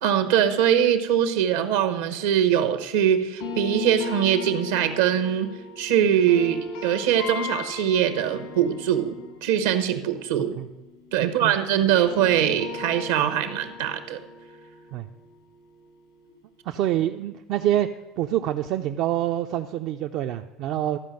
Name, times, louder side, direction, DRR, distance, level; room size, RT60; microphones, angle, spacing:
voice 1, 0.0-5.5 5.8-10.6 11.1-14.2, right 9 dB, 80° right, 8 dB, 1.0 m, -22 dB
sound 1, 3.4-11.5 11.8-16.7, left 4 dB, 80° left, 2.2 m, -38 dB
voice 2, 11.2-11.6 14.9-15.1 16.7-17.9 18.2-21.0, right 12 dB, 60° right, 6 dB, 0.4 m, -26 dB
13.0 x 5.1 x 7.6 m, 1.0 s
supercardioid pair, 90°, 0 cm